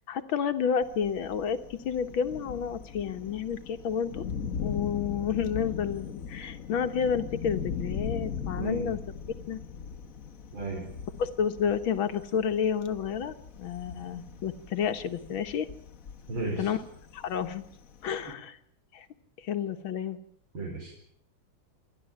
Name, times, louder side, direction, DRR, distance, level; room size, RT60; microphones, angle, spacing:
voice 1, 0.0-4.2 4.6-9.0 9.5-9.6 11.2-15.7 16.6-16.8 17.1-17.6 18.0-18.6 18.9-19.1 19.4-20.2, left 7 dB, 80° left, 10 dB, 2.1 m, -30 dB
Thunder, 0.8-18.3, left 6 dB, 50° left, 1.3 m, -39 dB
voice 2, 8.5-8.9 10.5-10.8 16.3-16.7 20.5-20.9, right 3 dB, 80° right, 0 dB, 5.0 m, -34 dB
29.0 x 12.0 x 8.6 m, 0.65 s
omnidirectional pair, 2.2 m